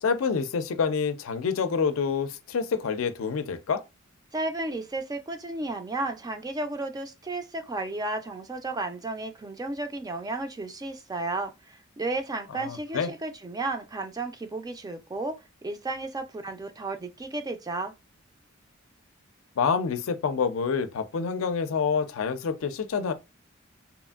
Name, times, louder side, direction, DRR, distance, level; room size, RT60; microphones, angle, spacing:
voice 1, 0.0-3.8 12.5-13.1 19.6-23.1, left 5 dB, 85° left, 0.4 m, -27 dB
voice 2, 4.3-15.4 15.6-17.9, right 2 dB, 20° right, 0.3 m, -33 dB
2.9 x 2.5 x 2.3 m
head